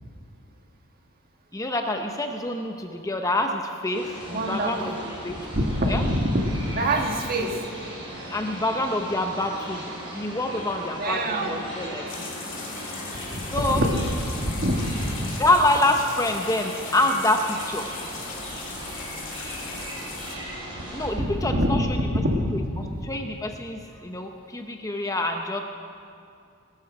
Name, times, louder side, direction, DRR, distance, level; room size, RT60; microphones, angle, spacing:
voice 1, 1.5-5.4 5.9-6.0 8.3-9.8 10.1-12.3 13.5-13.8 15.4-17.9 20.9-21.9 22.5-22.6 23.0-25.6, left 1 dB, 15° left, 4 dB, 0.6 m, -26 dB
sound 1, 3.9-21.1, right 1 dB, 20° right, 4.1 m, -37 dB
voice 2, 4.3-5.0 5.5-7.6 11.0-11.6 13.3-15.4 21.2-23.0, equal, 40° right, 3 dB, 1.5 m, -25 dB
sound 2, 12.1-20.4, left 7 dB, 60° left, 1.8 m, -39 dB
18.5 x 12.5 x 4.9 m, 2.5 s
head